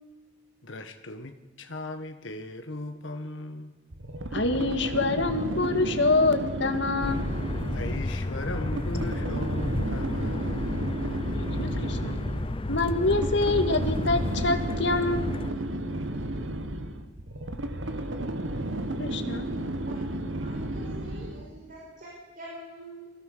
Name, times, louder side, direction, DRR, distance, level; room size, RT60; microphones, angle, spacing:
voice 1, 0.6-3.7 7.7-11.0, left 2 dB, 90° left, 7 dB, 1.5 m, -38 dB
sound 1, 3.9-21.5, right 1 dB, 85° right, 1.5 m, -33 dB
voice 2, 4.3-7.3 11.3-12.2 12.7-15.6 19.0-19.5, left 2 dB, 65° left, 7 dB, 2.2 m, -26 dB
sound 2, 7.0-15.5, left 2 dB, 30° left, 0.6 m, -32 dB
voice 3, 20.3-23.1, right 1 dB, 45° right, -3 dB, 5.7 m, -44 dB
24.0 x 17.0 x 6.8 m, 1.3 s
head